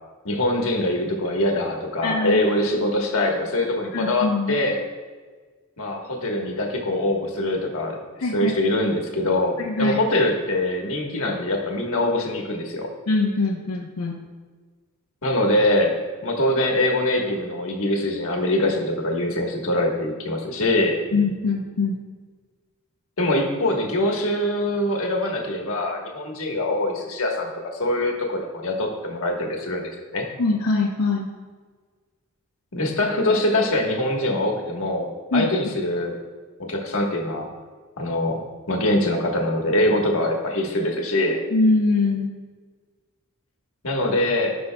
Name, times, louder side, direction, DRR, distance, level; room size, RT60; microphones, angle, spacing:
voice 1, 0.2-4.8 5.8-8.0 8.3-12.9 15.2-15.9 16.2-20.9 23.2-27.5 27.8-29.8 30.1-30.2 32.7-36.1 36.6-37.5 38.0-38.4 38.7-41.4 43.8-44.6, left 1 dB, 65° left, 1 dB, 1.3 m, -23 dB
voice 2, 2.0-2.4 3.9-4.6 8.2-8.5 9.6-10.0 13.1-14.2 21.1-22.0 30.4-31.3 35.3-35.5 41.5-42.3, left 3 dB, 90° left, -2 dB, 0.8 m, -22 dB
16.5 x 5.5 x 2.2 m, 1.4 s
head